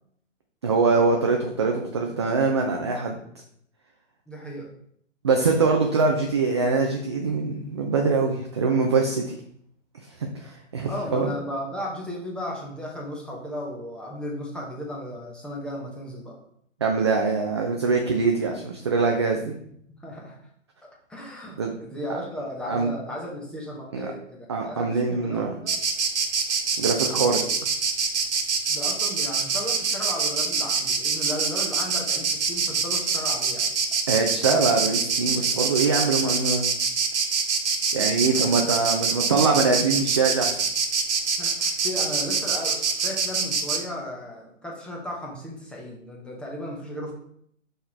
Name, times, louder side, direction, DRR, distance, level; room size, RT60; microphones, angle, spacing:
voice 1, 0.6-3.2 5.2-9.3 10.2-11.3 16.8-19.5 21.6-21.7 22.7-22.9 23.9-24.1 24.5-25.5 26.8-27.4 34.1-36.7 37.9-40.6, right 4 dB, 25° right, 2 dB, 0.4 m, -23 dB
voice 2, 4.3-4.7 10.9-16.4 20.0-20.4 21.1-25.7 28.7-33.7 38.2-38.6 41.4-47.1, left 1 dB, ahead, -3 dB, 0.8 m, -35 dB
Insect, 25.7-43.8, right 5 dB, 60° right, 1.3 m, -25 dB
5.6 x 4.3 x 4.3 m, 0.68 s
figure-of-eight pair, 125°, 39 cm